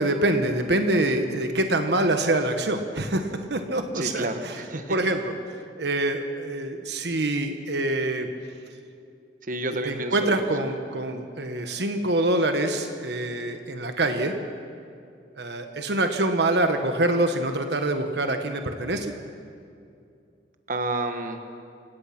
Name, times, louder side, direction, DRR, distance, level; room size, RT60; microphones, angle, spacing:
voice 1, 0.0-4.6 4.9-5.4 5.8-8.3 9.8-14.3 15.3-19.1, right 1 dB, 65° right, 6 dB, 1.3 m, -25 dB
voice 2, 3.9-5.0 9.5-10.4 20.7-21.4, right 2 dB, 50° right, 6 dB, 1.4 m, -30 dB
28.5 x 17.0 x 6.0 m, 2.5 s
head